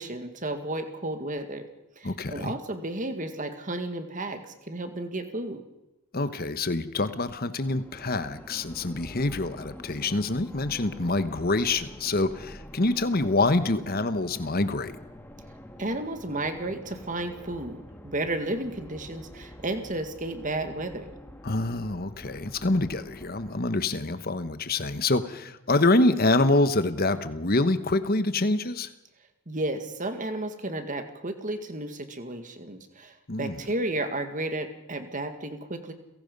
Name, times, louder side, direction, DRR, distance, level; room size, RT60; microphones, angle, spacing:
voice 1, 0.0-1.6 2.0-5.6 15.8-21.1 29.5-35.9, right 2 dB, 35° right, 7 dB, 2.0 m, -33 dB
voice 2, 2.0-2.5 6.1-14.9 21.4-28.9 33.3-33.6, left 2 dB, 40° left, 12 dB, 1.2 m, -26 dB
sound 1, 7.6-23.6, equal, 10° left, 1.7 m, -46 dB
30.0 x 17.0 x 5.4 m, 0.98 s
head